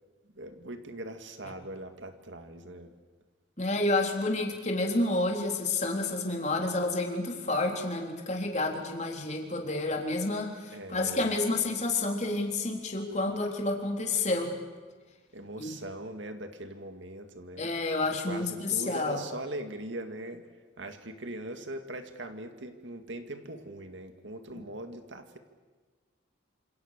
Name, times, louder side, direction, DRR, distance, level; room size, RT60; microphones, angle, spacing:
voice 1, 0.3-2.9 10.7-11.4 15.3-17.7 18.3-20.4 20.8-25.4, right 1 dB, 70° right, 7 dB, 2.1 m, -41 dB
voice 2, 3.6-14.5 15.6-15.7 17.6-19.2 24.5-24.6, left 2 dB, 35° left, 2 dB, 3.7 m, -29 dB
28.0 x 27.0 x 6.7 m, 1.4 s
head